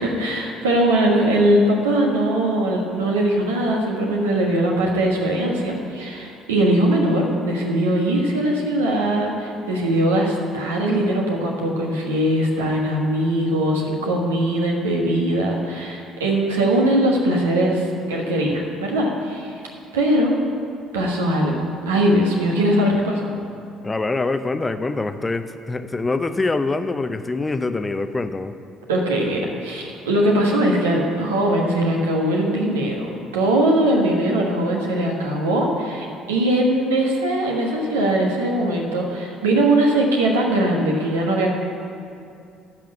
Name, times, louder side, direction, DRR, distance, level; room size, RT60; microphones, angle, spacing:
voice 1, 0.0-19.5 19.9-20.4 20.9-23.3 28.9-41.5, right 1 dB, 75° right, -1 dB, 1.3 m, -20 dB
voice 2, 23.8-28.5, left 3 dB, 20° left, 10 dB, 0.6 m, -24 dB
10.5 x 6.0 x 8.9 m, 2.5 s
figure-of-eight pair, 50°, 0 cm